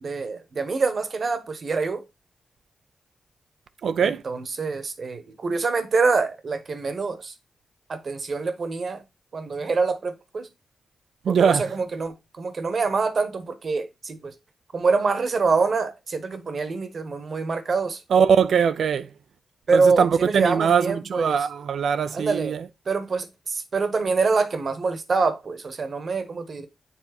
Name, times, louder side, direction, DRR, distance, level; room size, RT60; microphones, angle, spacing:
voice 1, 0.0-2.0 4.0-7.3 7.9-9.0 9.3-10.5 11.3-14.3 14.7-18.0 19.7-21.4 22.1-22.5 22.9-26.7, right 4 dB, 60° right, 1.1 m, -25 dB
voice 2, 3.8-4.2 11.2-11.7 18.1-19.1 19.7-22.7, right 7 dB, 80° right, 0.4 m, -21 dB
7.1 x 3.6 x 4.3 m
cardioid pair, 55°, 0 cm